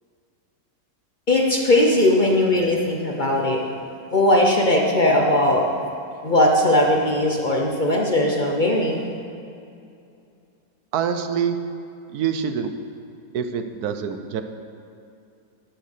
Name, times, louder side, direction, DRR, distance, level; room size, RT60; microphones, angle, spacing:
voice 1, 1.3-3.6 4.1-5.7 6.2-9.1, left 1 dB, 40° left, 0 dB, 0.7 m, -19 dB
voice 2, 10.9-11.6 12.1-12.7 13.3-14.4, right 7 dB, 70° right, 8 dB, 1.1 m, -25 dB
10.5 x 6.6 x 6.6 m, 2.6 s
omnidirectional pair, 1.9 m